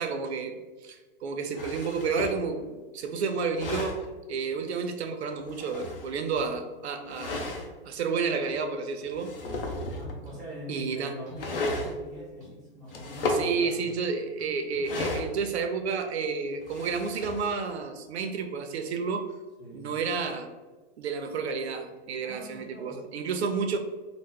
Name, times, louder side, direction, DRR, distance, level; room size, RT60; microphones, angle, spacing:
voice 1, 0.0-4.0 4.3-7.5 7.8-9.3 10.7-11.1 13.3-19.3 19.7-20.5 21.0-23.8, right 5 dB, 85° right, 5 dB, 0.6 m, -31 dB
sound 1, 1.6-2.4 3.4-4.1 5.3-6.4 7.1-7.7 8.5-8.6 9.0-10.2 11.4-12.0 12.9-13.5 14.8-15.6 16.5-17.8, left 2 dB, 60° left, 0.6 m, -33 dB
voice 2, 9.7-13.9 19.6-19.9 22.2-23.0, equal, ahead, -15 dB, 0.6 m, -43 dB
sound 2, 9.8-10.0 10.3-11.0 11.3-11.5 11.8-12.0 12.4-13.5 13.9-14.1 14.4-14.9, right 1 dB, 30° right, 0.8 m, -51 dB
2.9 x 2.1 x 3.4 m, 1.3 s
hypercardioid pair, 175°, 32 cm